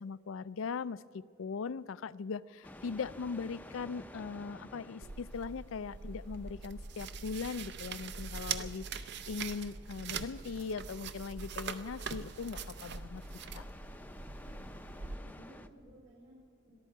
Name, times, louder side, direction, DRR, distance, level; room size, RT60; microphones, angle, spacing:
voice 1, 0.0-13.2 13.5-13.6, left 5 dB, 75° left, 17 dB, 0.4 m, -40 dB
sound 1, 2.6-15.7, left 1 dB, 10° left, 0.5 m, -54 dB
sound 2, 5.0-15.2, right 5 dB, 55° right, 0.6 m, -42 dB
Brass instrument, 5.9-11.8, right 3 dB, 40° right, 1.5 m, -69 dB
voice 2, 14.3-14.7 15.2-16.7, equal, 75° right, -7 dB, 4.9 m, -57 dB
22.0 x 13.5 x 4.6 m, 2.4 s
head